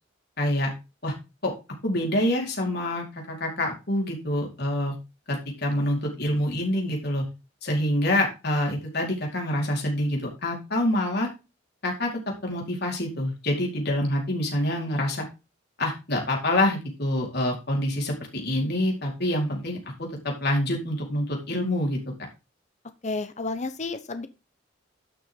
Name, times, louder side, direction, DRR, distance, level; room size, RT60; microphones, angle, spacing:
voice 1, 0.4-0.7 1.0-1.1 1.4-1.5 1.8-4.9 5.3-7.2 7.6-11.3 11.8-12.1 12.4-15.2 15.8-22.0, left 1 dB, 55° left, 0 dB, 4.6 m, -26 dB
voice 2, 23.0-24.3, left 3 dB, 35° left, 10 dB, 0.9 m, -31 dB
12.0 x 6.6 x 3.9 m, 0.28 s
head